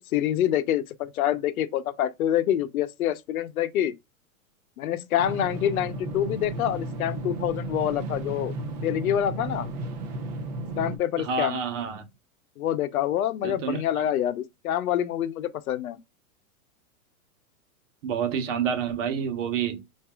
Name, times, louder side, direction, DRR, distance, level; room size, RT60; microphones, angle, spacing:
voice 1, 0.1-3.9 4.8-8.5 8.8-9.7 10.8-11.6 12.6-16.0, left 11 dB, 80° left, 0.7 m, -26 dB
sound 1, 5.2-11.0, right 2 dB, 30° right, 0.5 m, -34 dB
voice 2, 11.2-12.0 13.4-13.8 18.0-19.8, right 7 dB, 60° right, 1.0 m, -28 dB
4.7 x 2.6 x 2.2 m
supercardioid pair, 155°, 42 cm